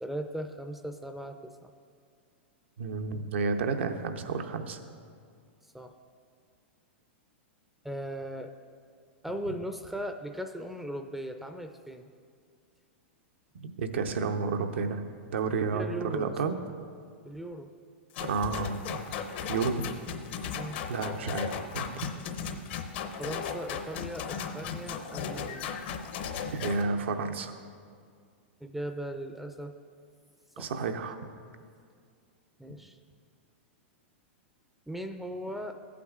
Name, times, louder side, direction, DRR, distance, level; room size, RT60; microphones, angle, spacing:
voice 1, 0.0-1.7 5.7-5.9 7.8-8.5 9.2-12.1 15.7-16.4 17.2-17.7 20.5-20.8 23.2-25.7 28.6-29.8 30.6-30.7 32.6-33.0 34.9-35.8, right 1 dB, 5° right, 6 dB, 0.4 m, -38 dB
voice 2, 2.8-4.8 13.5-15.0 15.3-16.6 18.2-19.0 19.5-19.8 20.9-22.1 26.4-27.5 30.6-31.2, right 4 dB, 75° right, 6 dB, 0.7 m, -31 dB
sound 1, 18.1-26.8, left 7 dB, 60° left, 0.7 m, -36 dB
15.0 x 8.4 x 2.4 m, 2.1 s
hypercardioid pair, 115°, 6 cm